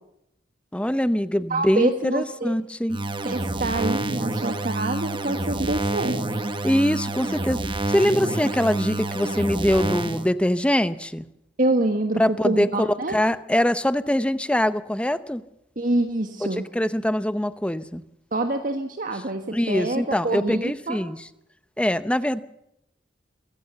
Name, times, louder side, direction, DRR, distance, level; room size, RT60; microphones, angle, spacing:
voice 1, 0.7-3.0 6.6-7.6 7.9-11.2 12.2-15.4 16.5-18.0 19.5-21.2 21.8-22.4, equal, 5° left, 14 dB, 0.7 m, -23 dB
voice 2, 1.5-2.5 3.2-6.2 11.6-13.1 15.8-16.6 18.3-21.0, right 2 dB, 50° right, 5 dB, 1.6 m, -26 dB
sound 1, 2.9-10.3, right 2 dB, 25° right, 1.1 m, -28 dB
24.5 x 16.0 x 7.0 m, 0.82 s
head